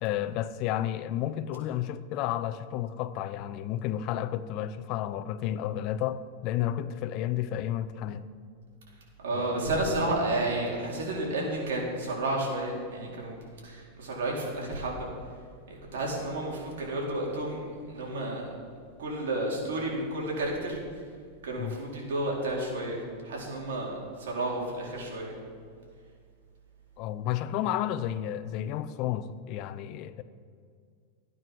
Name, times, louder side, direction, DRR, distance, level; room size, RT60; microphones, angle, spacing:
voice 1, 0.0-8.2 9.3-9.6 21.6-21.8 27.0-30.2, left 11 dB, 50° left, 13 dB, 0.7 m, -32 dB
voice 2, 9.2-13.4 13.6-15.1 15.7-18.4 19.0-20.8 21.4-25.3, right 1 dB, 85° right, -2 dB, 4.4 m, -31 dB
15.0 x 9.5 x 6.2 m, 2.1 s
supercardioid pair, 135°, 0 cm